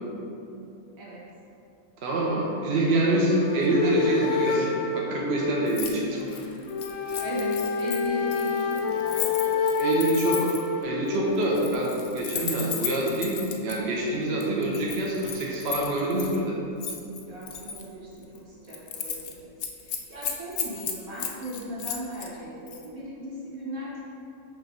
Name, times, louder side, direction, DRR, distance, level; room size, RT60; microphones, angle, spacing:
voice 1, 2.0-6.4 7.0-7.2 9.8-10.5 10.8-16.6, right 1 dB, 55° right, -3 dB, 0.9 m, -26 dB
sound 1, 2.9-11.7, left 5 dB, 85° left, 1.1 m, -29 dB
voice 2, 3.7-4.3 6.3-6.6 7.2-9.6 17.3-19.5 19.8-24.0, right 1 dB, 70° right, -7 dB, 1.9 m, -36 dB
Keys jangling, 5.7-5.9 6.2-10.7 11.4-13.8 14.4-16.4 16.8-17.9 18.2-18.4 18.7-19.3 19.6-22.3 22.7-22.9, left 7 dB, 65° left, 0.8 m, -35 dB
6.9 x 3.1 x 5.1 m, 2.7 s
omnidirectional pair, 1.5 m